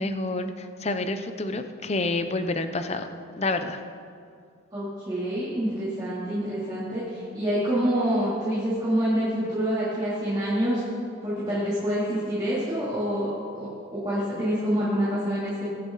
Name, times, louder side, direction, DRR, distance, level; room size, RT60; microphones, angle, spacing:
voice 1, 0.0-3.1 3.4-3.8, left 2 dB, 30° left, 8 dB, 0.6 m, -28 dB
voice 2, 4.7-10.8 11.2-13.3 13.5-15.7, equal, 20° right, -11 dB, 3.0 m, -27 dB
22.5 x 7.7 x 4.0 m, 2.4 s
head